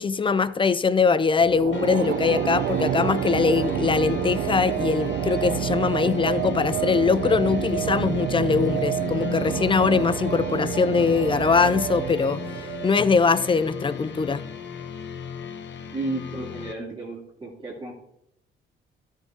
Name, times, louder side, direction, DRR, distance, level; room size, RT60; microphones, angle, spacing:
voice 1, 0.0-12.4 12.8-14.5, left 5 dB, 25° left, 0.6 m, -22 dB
sound 1, 1.4-14.0, right 11 dB, 70° right, 0.6 m, -29 dB
sound 2, 1.7-16.7, left 7 dB, 65° left, 1.2 m, -36 dB
voice 2, 15.9-18.0, right 2 dB, 25° right, 2.9 m, -33 dB
13.0 x 5.6 x 4.7 m
cardioid pair, 90°, 20 cm